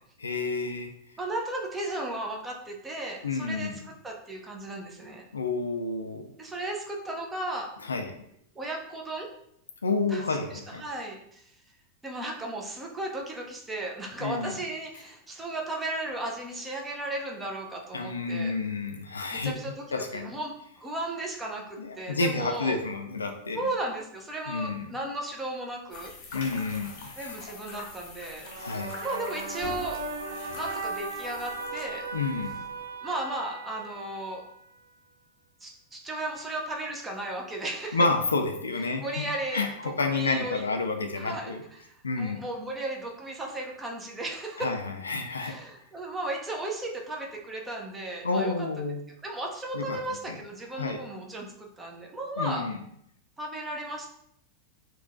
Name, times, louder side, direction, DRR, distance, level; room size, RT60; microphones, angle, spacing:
voice 1, 0.2-0.9 3.2-3.8 5.3-6.3 7.8-8.1 9.8-10.8 14.2-14.6 17.9-19.5 19.9-20.3 21.8-23.7 24.5-25.0 26.3-27.4 28.6-29.0 32.1-32.6 37.9-41.6 42.0-42.4 44.6-45.5 48.2-49.0 49.7-50.0 50.3-50.4 50.8-51.0 52.4-52.8, left 3 dB, 75° left, 5 dB, 0.3 m, -30 dB
voice 2, 1.2-5.2 6.4-7.7 8.5-9.3 10.1-10.2 10.5-11.5 12.0-18.5 19.3-19.8 20.1-22.8 23.5-26.1 27.2-30.0 30.5-32.1 33.0-34.4 35.6-38.0 39.0-40.6 41.2-41.5 42.2-44.7 45.4-48.7 49.2-52.7 53.4-54.1, right 2 dB, 15° right, 0 dB, 0.6 m, -35 dB
sound 1, 25.9-32.9, left 3 dB, 45° left, 0.7 m, -44 dB
sound 2, 28.4-34.8, right 2 dB, 75° right, 0.3 m, -38 dB
3.8 x 2.2 x 2.5 m, 0.72 s
figure-of-eight pair, 90°, 0 cm